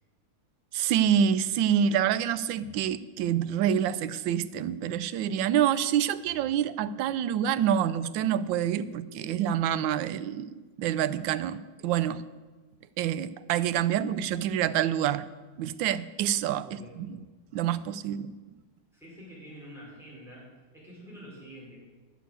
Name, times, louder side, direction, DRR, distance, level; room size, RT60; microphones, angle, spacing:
voice 1, 0.7-12.2 13.0-15.3 15.6-16.7 17.0-17.2 17.5-18.3, right 9 dB, 85° right, 14 dB, 1.3 m, -27 dB
voice 2, 16.6-17.0 18.9-21.8, equal, ahead, -7 dB, 5.0 m, -47 dB
10.5 x 7.7 x 8.1 m, 1.3 s
omnidirectional pair, 2.0 m